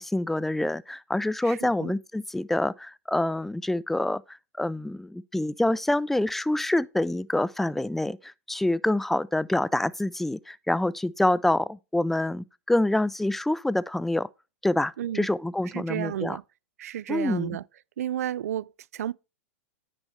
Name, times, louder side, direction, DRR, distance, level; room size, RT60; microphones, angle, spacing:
voice 1, 0.0-14.3 14.6-16.4 17.1-17.6, left 1 dB, 5° left, 0.3 m, -26 dB
voice 2, 1.4-1.9 15.0-15.3 15.7-16.4 16.8-17.6 18.0-19.1, right 11 dB, 80° right, 0.4 m, -32 dB
9.7 x 6.2 x 3.2 m
hypercardioid pair, 120°, 8 cm